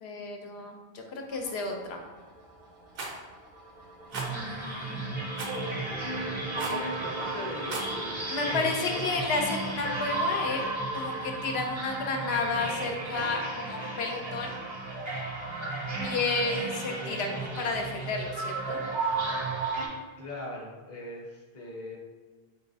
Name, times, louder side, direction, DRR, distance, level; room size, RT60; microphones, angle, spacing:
voice 1, 0.0-2.0 4.3-5.2 8.3-10.7 10.9-14.5 16.0-18.8, left 3 dB, 75° left, 2 dB, 0.8 m, -32 dB
sound 1, 1.3-11.4, right 1 dB, 90° right, 1.6 m, -46 dB
Rattle, 3.0-3.2 4.1-4.3 5.4-5.6 6.6-6.9 7.6-7.9, right 3 dB, 65° right, 0.8 m, -35 dB
sound 2, 4.1-19.9, right 2 dB, 35° right, 0.5 m, -33 dB
voice 2, 6.5-9.1 20.2-22.0, left 2 dB, 20° left, -3 dB, 0.5 m, -40 dB
4.0 x 3.0 x 2.7 m, 1.4 s
omnidirectional pair, 1.1 m